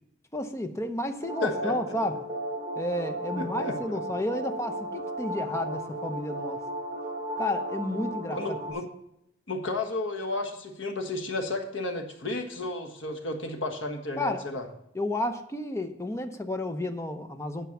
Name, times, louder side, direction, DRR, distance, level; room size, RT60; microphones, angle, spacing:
voice 1, 0.3-2.2 2.8-6.6 7.4-8.6 14.2-14.4 14.9-17.7, left 1 dB, 15° left, 7 dB, 0.7 m, -31 dB
sound 1, 1.2-8.7, right 1 dB, 20° right, 2.6 m, -34 dB
voice 2, 1.4-1.7 3.4-3.7 8.3-8.9 9.5-14.6, left 2 dB, 80° left, 4 dB, 1.5 m, -32 dB
9.3 x 6.0 x 7.1 m, 0.82 s
head